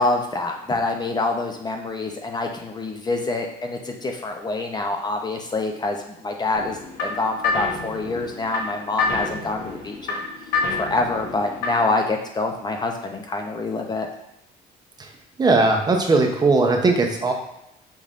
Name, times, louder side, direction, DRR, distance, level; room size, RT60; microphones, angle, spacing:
voice 1, 0.0-10.2 10.7-14.1, left 2 dB, 25° left, 3 dB, 0.5 m, -26 dB
sound 1, 6.6-12.0, left 4 dB, 75° left, 1.0 m, -28 dB
voice 2, 15.4-17.3, right 3 dB, 25° right, 2 dB, 0.6 m, -19 dB
5.4 x 3.2 x 2.4 m, 0.83 s
cardioid pair, 110°, 17 cm